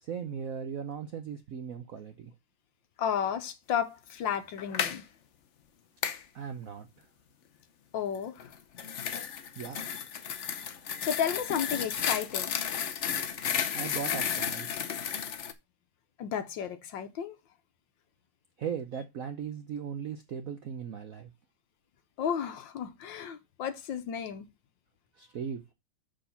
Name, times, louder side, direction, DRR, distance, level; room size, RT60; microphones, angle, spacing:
voice 1, 0.0-2.3 6.3-6.9 9.6-9.8 13.7-14.7 18.6-21.3 25.2-25.6, right 7 dB, 65° right, 0.8 m, -38 dB
voice 2, 3.0-5.0 7.9-8.5 11.0-12.6 16.2-17.4 22.2-24.5, left 8 dB, 65° left, 1.5 m, -33 dB
sound 1, 4.6-5.0 6.0-6.2 8.4-15.5, left 8 dB, 85° left, 0.6 m, -33 dB
6.6 x 5.1 x 5.6 m
omnidirectional pair, 2.3 m